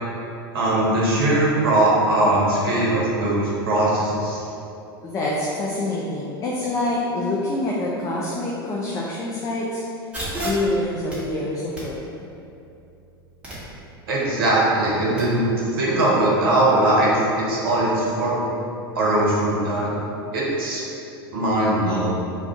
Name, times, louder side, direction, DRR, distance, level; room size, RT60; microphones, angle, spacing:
voice 1, 0.5-4.4 14.1-18.5 18.9-19.9 20.3-20.8 21.3-22.1, right 1 dB, 65° right, -5 dB, 0.8 m, -20 dB
voice 2, 5.0-9.8 10.3-12.3, left 2 dB, 25° left, -4 dB, 0.4 m, -26 dB
sound 1, 10.1-15.2, right 1 dB, 10° right, 1.0 m, -36 dB
2.3 x 2.3 x 3.7 m, 2.7 s
figure-of-eight pair, 85°, 13 cm